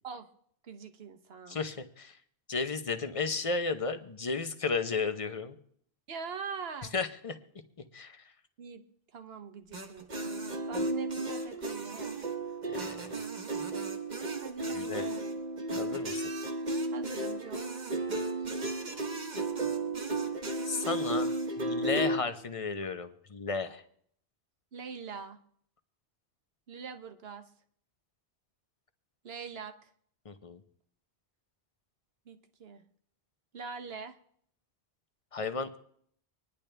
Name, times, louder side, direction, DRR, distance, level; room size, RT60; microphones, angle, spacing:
voice 1, 0.6-1.6 6.1-6.9 8.6-8.8 9.1-12.1 14.4-15.3 16.9-17.7 24.7-25.4 26.7-27.5 29.2-29.9 32.3-32.8 33.5-34.1, right 5 dB, 65° right, 8 dB, 1.2 m, -43 dB
voice 2, 1.5-2.2 2.5-5.5 6.9-7.4 7.9-8.3 12.7-13.1 14.7-15.1 15.7-16.2 20.6-23.8 30.2-30.6 35.3-35.8, left 4 dB, 35° left, 9 dB, 0.8 m, -34 dB
sound 1, 9.7-22.2, right 2 dB, 45° right, 1.3 m, -34 dB
26.0 x 10.5 x 3.4 m, 0.66 s
omnidirectional pair, 1.1 m